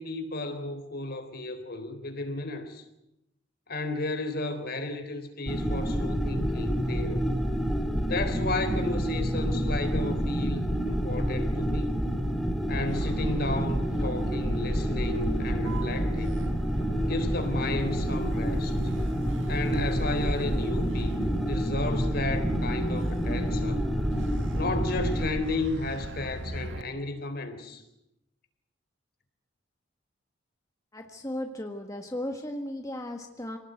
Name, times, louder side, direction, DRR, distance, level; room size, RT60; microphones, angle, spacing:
voice 1, 0.0-2.8 3.7-7.2 8.0-12.0 12.7-16.4 17.0-18.8 19.5-21.2 21.5-23.9 24.6-27.8, left 2 dB, 55° left, 8 dB, 3.9 m, -33 dB
sound 1, 5.5-25.3, equal, ahead, 2.6 m, -28 dB
Motor vehicle (road), 12.8-26.8, right 1 dB, 85° right, 1.7 m, -41 dB
voice 2, 30.9-33.6, left 1 dB, 20° left, 4 dB, 1.6 m, -36 dB
27.0 x 19.0 x 9.2 m, 0.87 s
head